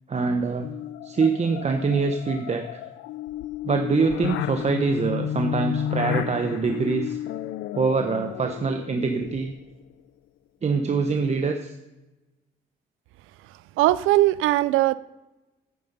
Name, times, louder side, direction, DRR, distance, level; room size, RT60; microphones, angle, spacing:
voice 1, 0.1-0.7 1.0-2.8 3.6-7.2 7.7-9.5 10.6-11.7, right 4 dB, 35° right, 0.8 m, -24 dB
sound 1, 0.6-9.7, left 11 dB, 90° left, 0.4 m, -32 dB
voice 2, 13.8-14.9, right 16 dB, 90° right, 0.4 m, -19 dB
9.4 x 8.3 x 5.4 m
cardioid pair, 90°, 20 cm